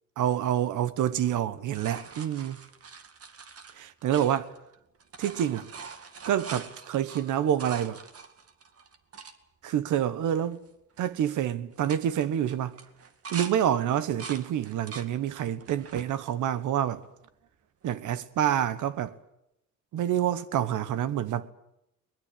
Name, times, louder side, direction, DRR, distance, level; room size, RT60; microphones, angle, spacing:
voice 1, 0.2-2.6 3.8-4.5 5.2-5.7 6.3-8.0 9.6-10.6 11.0-12.7 13.3-17.0 17.8-19.1 19.9-21.5, right 10 dB, 80° right, 1.3 m, -27 dB
sound 1, 1.1-4.7 5.0-9.4 9.9-10.0 10.2-10.7 11.0-11.3 11.7-13.5 13.9-15.1 15.6-16.1 16.7-17.5 19.1-19.2, right 5 dB, 50° right, 2.2 m, -44 dB
22.0 x 20.5 x 8.7 m
cardioid pair, 90°, 30 cm